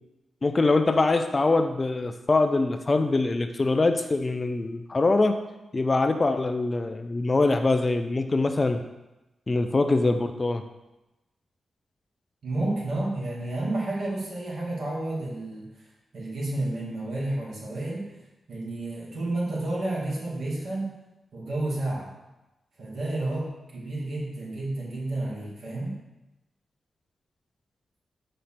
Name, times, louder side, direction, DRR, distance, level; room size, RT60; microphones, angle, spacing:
voice 1, 0.4-5.4 5.7-8.8 9.5-10.6, left 3 dB, 25° left, 7 dB, 0.4 m, -23 dB
voice 2, 12.4-15.9 16.1-18.1 18.5-20.9 21.3-22.1 22.8-26.0, right 2 dB, 60° right, -5 dB, 2.8 m, -31 dB
6.5 x 5.4 x 5.9 m, 1.0 s
wide cardioid pair, 175°, 0 cm